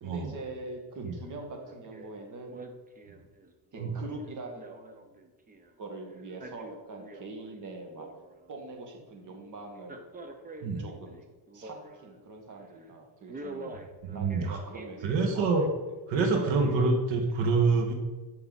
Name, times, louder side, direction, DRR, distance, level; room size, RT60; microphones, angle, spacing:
voice 1, 0.0-2.7 3.7-5.0 5.8-8.1 8.5-10.0 10.8-11.2 11.5-13.8 14.1-15.6, right 2 dB, 40° right, 2 dB, 1.9 m, -43 dB
Male speech man speaking, 1.1-1.3 1.6-2.1 2.5-5.7 6.2-7.5 7.8-8.6 9.8-12.2 12.6-12.8 13.3-15.7 16.1-16.9 17.4-17.5, right 2 dB, 20° right, 0.8 m, -45 dB
voice 2, 14.0-14.6 15.0-15.7 16.1-17.9, right 4 dB, 75° right, 2 dB, 1.7 m, -26 dB
13.0 x 5.6 x 4.1 m, 1.3 s
cardioid pair, 130°, 46 cm